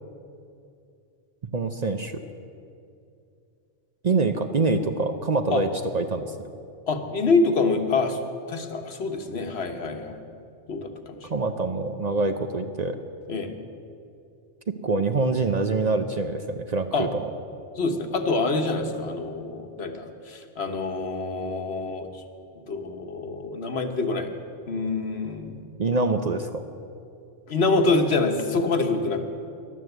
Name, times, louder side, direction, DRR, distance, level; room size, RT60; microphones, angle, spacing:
voice 1, 1.5-2.2 4.0-5.7 5.9-6.3 11.3-13.0 14.8-17.2 25.8-26.6, right 3 dB, 45° right, 7 dB, 0.7 m, -25 dB
voice 2, 6.9-8.2 8.5-10.2 10.7-11.3 13.3-13.5 16.9-17.1 17.8-22.1 22.7-24.3 24.7-25.6 27.5-29.2, left 3 dB, 70° left, 6 dB, 1.3 m, -26 dB
14.0 x 11.0 x 8.0 m, 2.5 s
omnidirectional pair, 1.1 m